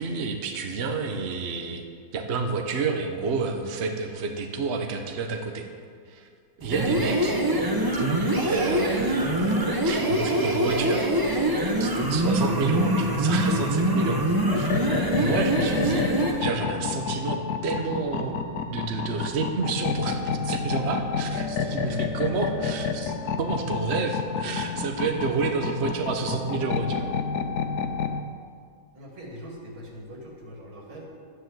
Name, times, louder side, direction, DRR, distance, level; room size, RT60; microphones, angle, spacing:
voice 1, 0.0-1.8 2.1-5.7 6.1-6.3 6.6-7.4 7.9-11.5 11.8-16.1 16.4-18.4 18.7-27.1, right 4 dB, 40° right, 4 dB, 1.2 m, -30 dB
sound 1, 6.6-16.4, right 1 dB, 15° right, 1.1 m, -24 dB
sound 2, 14.5-28.2, left 6 dB, 60° left, 1.2 m, -30 dB
voice 2, 21.5-22.4 28.9-31.0, right 1 dB, 90° right, -1 dB, 3.7 m, -42 dB
12.0 x 9.8 x 7.9 m, 2.1 s
omnidirectional pair, 2.1 m